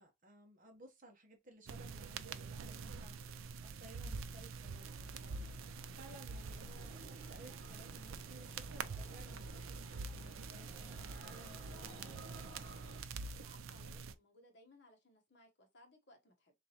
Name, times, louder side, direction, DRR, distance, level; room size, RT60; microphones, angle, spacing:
voice 1, 0.0-12.2, right 1 dB, 40° right, 1.1 m, -59 dB
sound 1, 1.7-14.1, right 4 dB, 90° right, 0.4 m, -46 dB
sound 2, 4.3-13.0, right 2 dB, 65° right, 1.2 m, -56 dB
voice 2, 13.3-16.5, left 1 dB, 60° left, 1.2 m, -64 dB
4.0 x 3.6 x 2.9 m
head